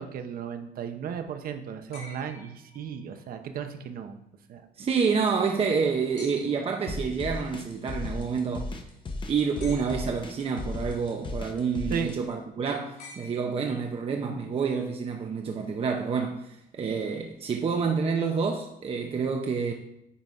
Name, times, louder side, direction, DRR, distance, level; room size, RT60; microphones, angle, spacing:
voice 1, 0.0-4.2 4.5-4.7 11.9-12.1, right 7 dB, 60° right, 1.0 m, -35 dB
sound 1, 1.9-3.3 6.2-6.8 9.6-10.4 13.0-14.0 15.6-15.7, left 3 dB, 70° left, 3.1 m, -49 dB
voice 2, 4.8-8.7 9.3-19.7, right 5 dB, 35° right, 0.8 m, -28 dB
sound 2, 6.9-12.2, left 2 dB, 30° left, 0.9 m, -35 dB
9.5 x 4.1 x 4.8 m
cardioid pair, 110°, 17 cm